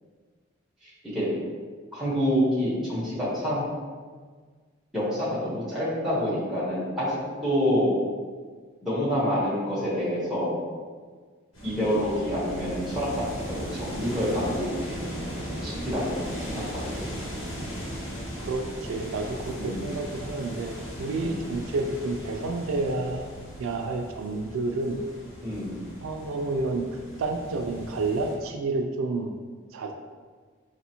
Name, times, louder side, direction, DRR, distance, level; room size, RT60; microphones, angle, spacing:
voice 1, 0.8-1.3 1.9-3.6 4.9-7.9 8.8-10.6 11.6-15.1 15.6-17.1 19.6-19.9 21.1-21.4 25.4-25.8, equal, ahead, -10 dB, 1.1 m, -27 dB
sound 1, 11.5-28.4, equal, 85° left, 1.3 m, -37 dB
voice 2, 18.4-23.2 23.6-25.0 26.0-29.3 29.7-29.9, right 3 dB, 85° right, 4 dB, 0.3 m, -30 dB
3.9 x 2.5 x 2.9 m, 1.5 s
head